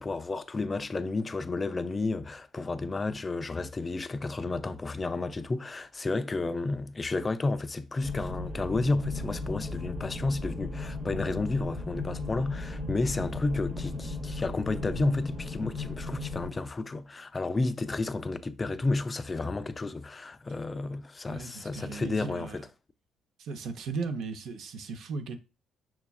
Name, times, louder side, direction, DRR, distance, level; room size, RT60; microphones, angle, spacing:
voice 1, 0.0-22.7, left 3 dB, 25° left, 0.3 m, -31 dB
sound 1, 8.0-16.5, left 2 dB, 10° right, 0.8 m, -36 dB
voice 2, 21.3-22.6 23.4-25.4, right 4 dB, 70° right, 0.6 m, -37 dB
5.8 x 2.3 x 2.3 m
cardioid pair, 110°, 0 cm